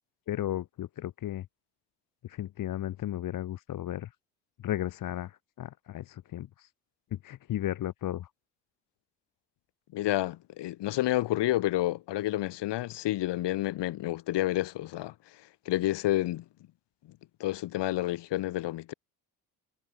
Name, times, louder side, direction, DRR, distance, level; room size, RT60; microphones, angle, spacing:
voice 1, 0.3-1.5 2.2-4.1 4.6-6.7 7.1-8.3, left 13 dB, 45° left, 0.8 m, -34 dB
voice 2, 9.9-15.1 15.6-16.4 17.4-18.9, left 15 dB, 60° left, 1.5 m, -29 dB
hypercardioid pair, 55°, 48 cm